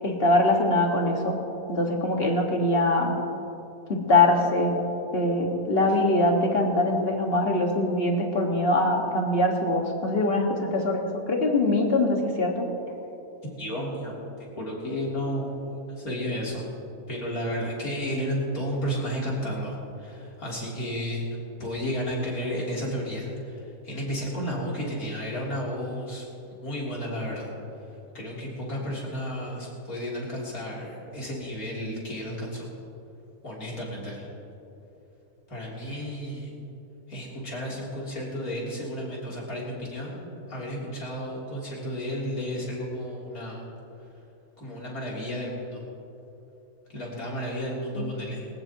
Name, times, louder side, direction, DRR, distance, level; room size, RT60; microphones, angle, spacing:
voice 1, 0.0-1.4 1.7-3.1 3.9-4.7 5.1-12.7 48.0-48.1, left 2 dB, 40° left, 1 dB, 1.9 m, -23 dB
voice 2, 13.4-16.7 17.1-21.3 21.6-27.5 27.8-32.7 33.4-34.3 35.5-36.5 37.1-43.7 44.6-45.8 46.9-48.5, equal, 70° left, -5 dB, 3.8 m, -32 dB
20.5 x 19.0 x 3.0 m, 2.9 s
omnidirectional pair, 1.6 m